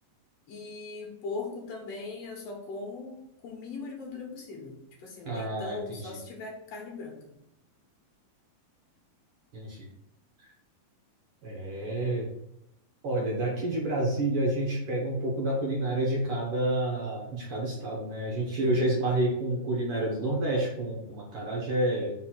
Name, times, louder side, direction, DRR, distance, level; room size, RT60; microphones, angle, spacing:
voice 1, 0.5-7.4 18.6-19.1, left 3 dB, 55° left, 0 dB, 2.0 m, -40 dB
voice 2, 5.2-6.0 9.5-9.9 11.4-12.3 13.0-22.1, right 1 dB, 60° right, -2 dB, 1.4 m, -29 dB
5.1 x 4.1 x 6.0 m, 0.78 s
omnidirectional pair, 4.3 m